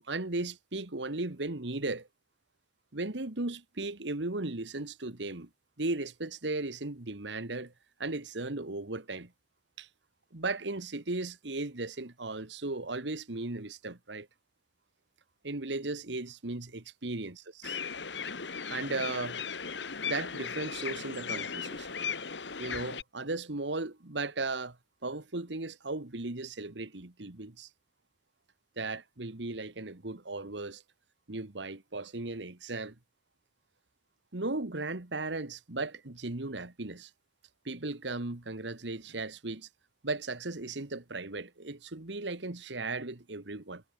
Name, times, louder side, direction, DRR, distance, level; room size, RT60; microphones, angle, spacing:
voice 1, 0.0-2.1 2.9-5.5 5.8-7.7 8.0-9.3 9.8-9.9 10.3-14.3 15.4-17.8 18.7-19.4 20.1-22.0 22.6-24.8 25.0-27.7 28.8-30.8 31.3-33.0 34.3-37.1 37.7-39.7 40.0-43.8, right 2 dB, 80° right, 1.8 m, -36 dB
sound 1, 17.6-23.0, left 6 dB, 80° left, 1.9 m, -37 dB
head